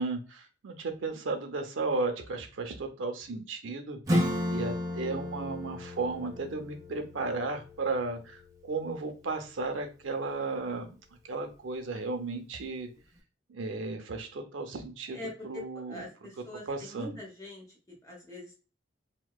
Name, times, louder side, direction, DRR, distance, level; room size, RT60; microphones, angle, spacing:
voice 1, 0.0-11.0 11.3-12.9 13.5-16.1 16.4-17.2, right 3 dB, 90° right, 5 dB, 0.5 m, -35 dB
Acoustic guitar / Strum, 4.1-9.3, equal, 15° right, 0.4 m, -34 dB
voice 2, 15.1-17.6 18.0-18.5, left 1 dB, 15° left, -2 dB, 0.8 m, -43 dB
2.8 x 2.1 x 2.2 m, 0.36 s
head